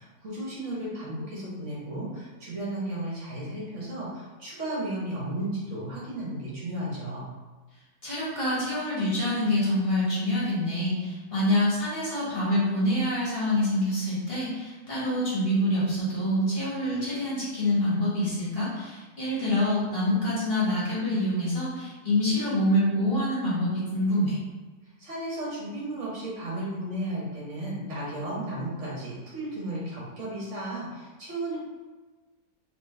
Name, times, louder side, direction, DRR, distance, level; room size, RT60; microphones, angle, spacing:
voice 1, 0.0-7.3 25.0-31.6, right 1 dB, 55° right, -7 dB, 1.5 m, -34 dB
voice 2, 8.0-24.4, left 1 dB, 40° left, -8 dB, 1.6 m, -26 dB
4.2 x 3.1 x 3.2 m, 1.3 s
omnidirectional pair, 1.6 m